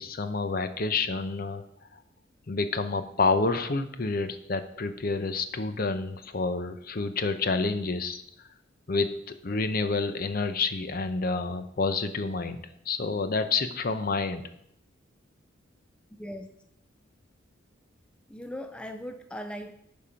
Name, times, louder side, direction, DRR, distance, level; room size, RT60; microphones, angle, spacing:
voice 1, 0.0-1.6 2.5-8.2 8.9-14.5, left 3 dB, 45° left, 10 dB, 0.7 m, -29 dB
voice 2, 16.2-16.5 18.3-19.7, equal, 5° left, 7 dB, 0.4 m, -38 dB
10.0 x 5.5 x 5.1 m, 0.75 s
head